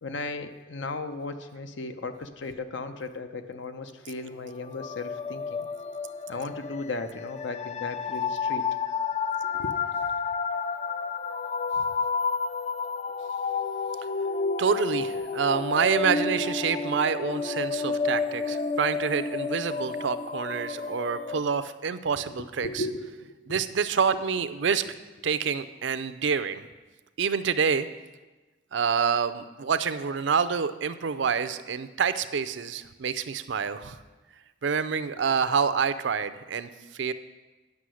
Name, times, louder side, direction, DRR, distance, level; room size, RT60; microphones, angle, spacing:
voice 1, 0.0-5.7 6.3-8.7 9.5-9.7 22.6-23.6 35.2-35.3, left 3 dB, 75° left, 9 dB, 0.7 m, -36 dB
sound 1, 4.6-21.4, left 5 dB, 35° left, 0.4 m, -30 dB
voice 2, 14.6-22.8 23.5-24.8 25.2-26.6 27.2-27.9 28.7-34.0 34.6-37.1, right 6 dB, 70° right, 12 dB, 0.5 m, -27 dB
9.7 x 6.5 x 6.3 m, 1.2 s
head